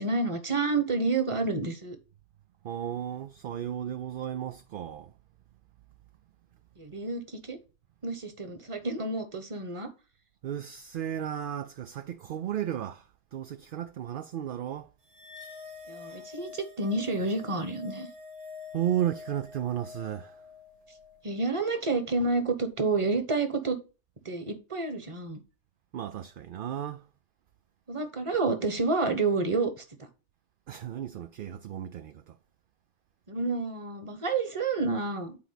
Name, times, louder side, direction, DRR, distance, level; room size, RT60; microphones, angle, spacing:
voice 1, 0.0-2.0 6.8-7.6 8.0-9.9 15.9-18.1 21.2-23.8 24.2-25.4 27.9-29.8 33.3-35.4, right 3 dB, 30° right, 1.1 m, -29 dB
voice 2, 2.6-5.1 10.4-14.9 18.7-20.4 25.9-27.1 30.7-32.4, right 10 dB, 60° right, 0.6 m, -34 dB
sound 1, 15.1-21.7, left 5 dB, 85° right, 1.7 m, -46 dB
8.7 x 4.5 x 4.0 m
omnidirectional pair, 1.2 m